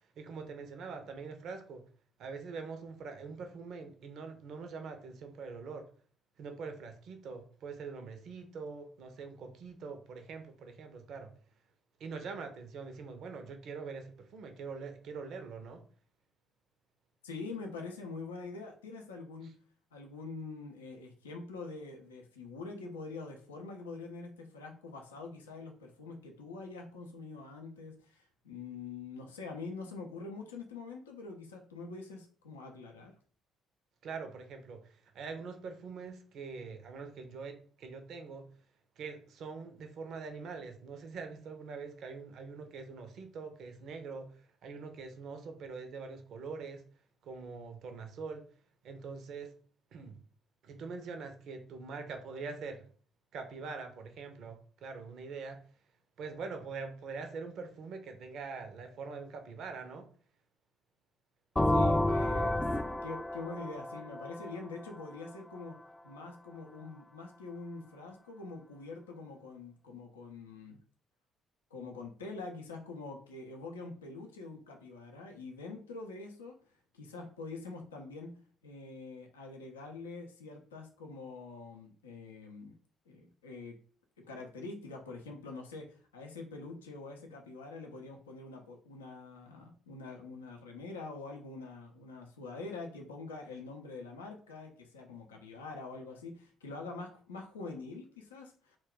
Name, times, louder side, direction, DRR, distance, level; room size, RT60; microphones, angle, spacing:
voice 1, 0.2-1.9 2.2-5.9 6.4-11.3 12.0-15.8 34.0-38.5 39.0-46.8 47.2-48.5 48.8-49.5 49.9-50.2 50.6-52.8 53.3-55.6 56.2-60.1, right 4 dB, 60° right, 0.5 m, -44 dB
voice 2, 17.2-19.5 19.9-33.1 61.7-65.8 66.0-70.8 71.7-76.6 76.9-82.8 83.1-83.8 84.2-98.8, left 3 dB, 85° left, 0.4 m, -45 dB
sound 1, 61.6-65.3, left 1 dB, 15° left, 0.3 m, -30 dB
2.2 x 2.2 x 3.6 m
figure-of-eight pair, 45°, 0 cm